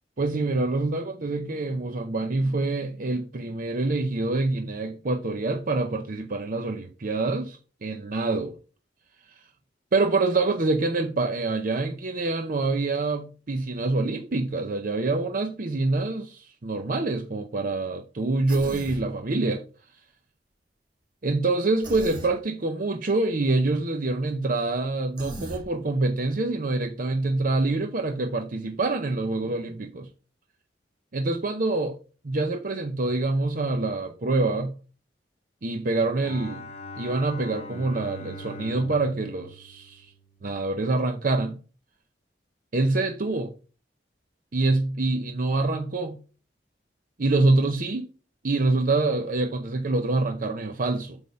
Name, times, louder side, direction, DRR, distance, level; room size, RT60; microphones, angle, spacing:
voice 1, 0.2-8.6 9.9-19.6 21.2-30.1 31.1-32.0 32.2-34.8 35.6-36.6 37.0-40.1 40.4-41.6 42.7-43.5 44.5-46.2 47.2-48.1 48.4-51.2, right 2 dB, 50° right, 0.7 m, -26 dB
Human voice, 18.5-19.0 21.8-22.3 25.2-25.6, right 1 dB, 25° right, 2.3 m, -36 dB
Bowed string instrument, 36.2-40.6, left 1 dB, 35° left, 0.8 m, -42 dB
8.1 x 3.5 x 5.3 m
head